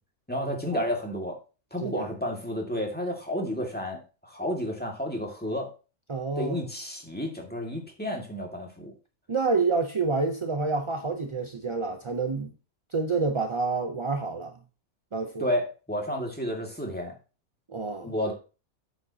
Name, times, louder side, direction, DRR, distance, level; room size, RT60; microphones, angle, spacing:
voice 1, 0.3-1.4 1.7-5.7 6.4-8.9 15.4-17.1 18.0-18.3, left 1 dB, 5° left, 1.9 m, -31 dB
voice 2, 6.1-6.6 9.3-12.5 12.9-14.5 15.1-15.5 17.7-18.1, right 4 dB, 40° right, 0.4 m, -28 dB
8.7 x 7.3 x 2.8 m
omnidirectional pair, 1.5 m